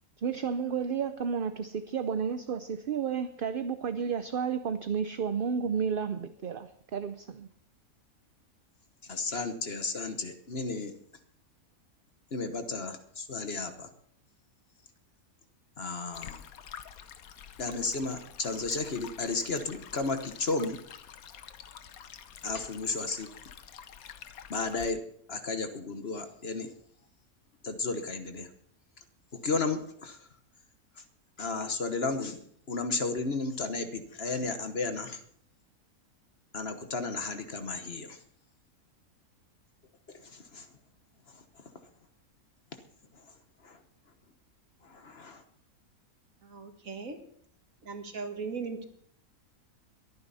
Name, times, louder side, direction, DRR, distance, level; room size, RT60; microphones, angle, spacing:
voice 1, 0.2-7.5, right 6 dB, 50° right, 10 dB, 0.7 m, -32 dB
voice 2, 9.0-10.9 12.3-13.9 15.8-16.4 17.6-20.8 22.4-23.3 24.5-25.0 25.3-26.7 27.6-28.5 29.3-30.3 31.0-31.1 31.4-32.4 32.7-35.2 36.5-38.2 40.1-40.7 41.3-41.6 42.7-42.8 43.1-43.2 43.6-43.8 44.8-45.4, left 3 dB, 50° left, 8 dB, 1.4 m, -33 dB
Stream, 16.1-24.9, left 9 dB, 90° left, 1.3 m, -48 dB
voice 3, 46.4-47.2 47.8-48.9, right 4 dB, 70° right, 5 dB, 2.1 m, -38 dB
22.5 x 9.7 x 4.2 m, 0.63 s
omnidirectional pair, 1.5 m